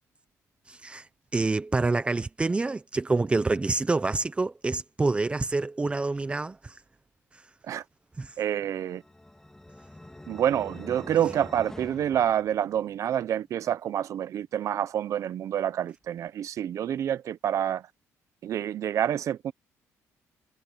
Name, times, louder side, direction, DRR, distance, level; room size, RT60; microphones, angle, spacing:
voice 1, 0.7-1.1 1.3-6.7 8.2-8.3, right 3 dB, 20° right, 0.9 m, -27 dB
voice 2, 8.4-9.0 10.3-17.9 18.4-19.5, right 10 dB, 60° right, 1.0 m, -28 dB
sound 1, 8.6-13.1, left 1 dB, 10° left, 2.2 m, -45 dB
cardioid pair, 115°, 6 cm